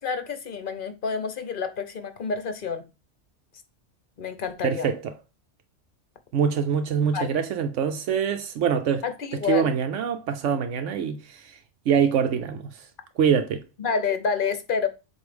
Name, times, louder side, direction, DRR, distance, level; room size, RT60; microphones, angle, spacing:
voice 1, 0.0-2.8 4.2-4.9 7.0-7.3 9.0-9.7 13.8-14.9, left 6 dB, 45° left, 1.0 m, -28 dB
voice 2, 4.6-5.1 6.3-9.0 9.4-11.6 11.9-12.9 13.2-13.6, right 7 dB, 80° right, 1.0 m, -24 dB
7.8 x 2.7 x 5.1 m
omnidirectional pair, 1.3 m